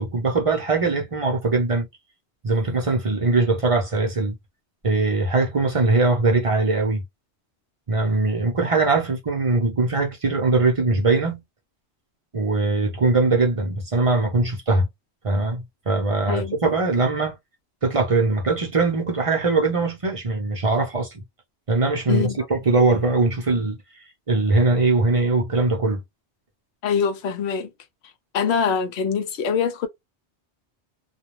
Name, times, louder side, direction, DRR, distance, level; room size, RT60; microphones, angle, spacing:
voice 1, 0.0-1.9 2.4-4.4 4.8-7.0 7.9-11.4 12.3-14.9 15.2-17.4 17.8-21.2 21.7-23.8 24.3-26.0, right 3 dB, 35° right, 0.7 m, -21 dB
voice 2, 16.3-16.6 22.1-22.5 26.8-27.7 28.3-29.9, left 6 dB, 75° left, 0.9 m, -24 dB
2.4 x 2.2 x 3.0 m
omnidirectional pair, 1.2 m